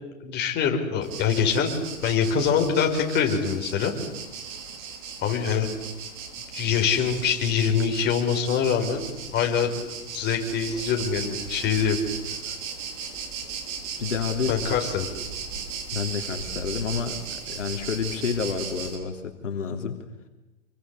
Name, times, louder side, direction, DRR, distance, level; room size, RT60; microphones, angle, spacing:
voice 1, 0.2-1.7 2.0-3.9 5.2-5.7 6.5-9.0 9.3-9.8 10.1-12.0 14.5-15.1, left 7 dB, 25° left, 3 dB, 5.0 m, -24 dB
sound 1, 1.0-19.0, right 6 dB, 30° right, 5.2 m, -36 dB
voice 2, 14.0-14.6 15.9-20.0, left 6 dB, 65° left, 5 dB, 3.2 m, -29 dB
28.0 x 23.5 x 8.5 m, 1.0 s
figure-of-eight pair, 120°, 40 cm